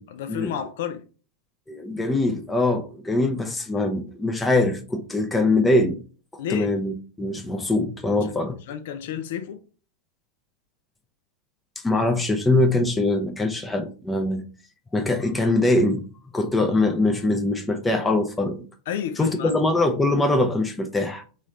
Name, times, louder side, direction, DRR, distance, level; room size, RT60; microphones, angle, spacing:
voice 1, 0.1-1.0 6.4-6.8 8.7-9.6 18.9-19.6, left 9 dB, 55° left, 0.6 m, -31 dB
voice 2, 1.7-6.0 6.5-8.6 11.8-14.4 14.9-16.0 16.3-18.6 19.2-21.2, left 2 dB, 10° left, 0.7 m, -22 dB
4.1 x 3.1 x 3.7 m
figure-of-eight pair, 90°, 0 cm